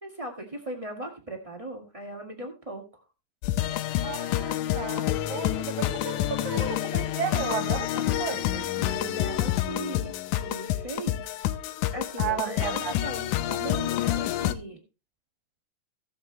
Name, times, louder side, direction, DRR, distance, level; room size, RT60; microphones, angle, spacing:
voice 1, 0.0-2.8 8.7-11.3 11.9-14.8, right 1 dB, 20° right, 0.9 m, -38 dB
sound 1, 3.4-14.5, left 13 dB, 85° left, 1.7 m, -28 dB
voice 2, 4.0-8.7 12.2-13.6, right 8 dB, 60° right, 2.3 m, -34 dB
16.0 x 7.8 x 3.2 m
omnidirectional pair, 4.3 m